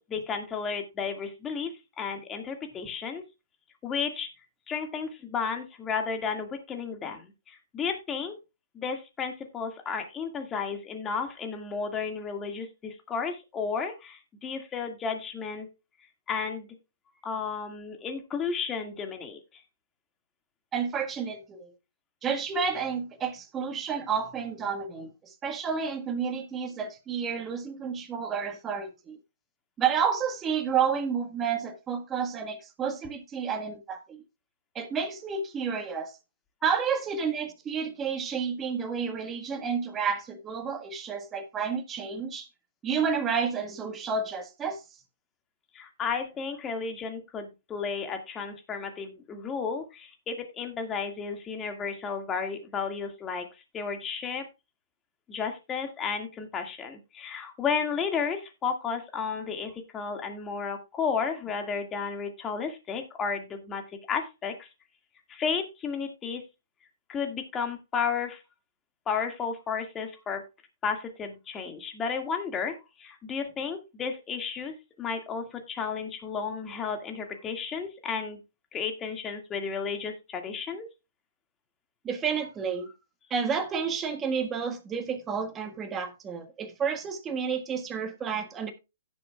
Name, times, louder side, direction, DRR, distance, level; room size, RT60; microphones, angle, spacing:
voice 1, 0.1-3.2 3.8-4.3 4.7-8.3 8.7-15.7 16.3-16.7 17.2-19.6 45.7-53.5 53.7-54.5 55.3-63.8 64.1-64.7 65.3-66.4 67.1-68.4 69.1-70.4 70.8-78.4 78.7-80.9, left 6 dB, 20° left, 2.0 m, -33 dB
voice 2, 20.7-21.7 22.2-29.2 29.8-34.2 34.7-36.1 36.6-42.5 42.8-44.8 82.0-82.9 83.3-88.7, right 6 dB, 20° right, 1.6 m, -30 dB
16.5 x 7.1 x 2.4 m
hypercardioid pair, 135°, 0 cm